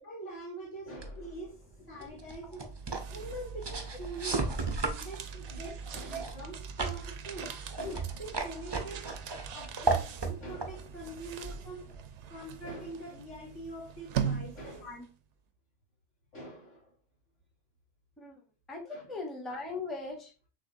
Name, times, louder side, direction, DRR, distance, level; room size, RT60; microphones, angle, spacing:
voice 1, 0.0-2.7 3.1-9.1 9.5-11.9 12.3-14.9 16.3-16.9 18.8-19.2, right 1 dB, 75° left, 2.6 m, -44 dB
sound 1, 1.0-12.1, right 3 dB, 30° right, 0.5 m, -37 dB
sound 2, 2.5-15.1, right 7 dB, 70° right, 0.9 m, -41 dB
voice 2, 18.7-20.5, left 2 dB, ahead, 0.7 m, -40 dB
6.5 x 2.8 x 2.6 m
omnidirectional pair, 1.3 m